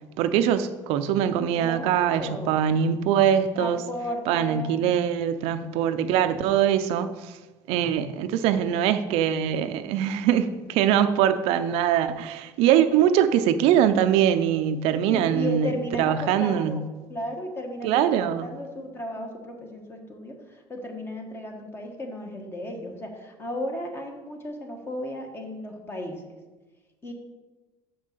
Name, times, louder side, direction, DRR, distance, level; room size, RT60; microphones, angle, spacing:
voice 1, 0.2-3.8 4.3-7.4 7.7-15.7 16.0-16.8 17.8-18.5, right 9 dB, 65° right, 0.6 m, -22 dB
voice 2, 1.6-2.6 3.5-4.8 14.9-16.8 17.1-26.3 27.0-27.1, left 1 dB, 20° left, 1.4 m, -35 dB
7.0 x 5.5 x 6.6 m
cardioid pair, 140°, 11 cm